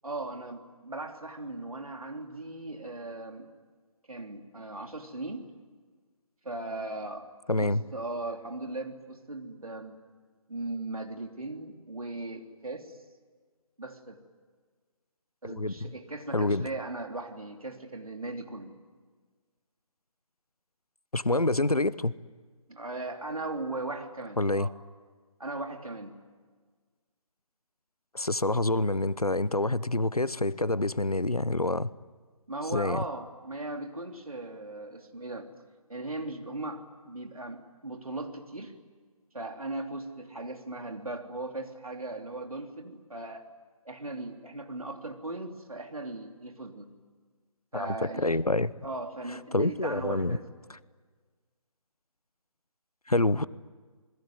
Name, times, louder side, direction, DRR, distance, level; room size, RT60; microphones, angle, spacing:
voice 1, 0.0-3.5 4.1-5.5 6.4-7.3 7.6-10.0 10.5-13.0 13.8-14.2 15.4-18.7 22.7-24.7 25.4-26.1 32.5-35.5 35.9-38.8 39.3-43.4 43.8-46.9 47.7-48.2 48.8-50.5, right 2 dB, 75° right, 4 dB, 3.2 m, -38 dB
voice 2, 7.5-7.8 15.4-15.9 16.3-16.7 21.1-22.1 24.4-24.7 28.1-31.9 32.7-33.0 47.7-48.7 49.5-50.4 53.1-53.5, left 2 dB, 90° left, 19 dB, 0.9 m, -27 dB
27.5 x 21.5 x 9.4 m, 1.5 s
figure-of-eight pair, 145°, 19 cm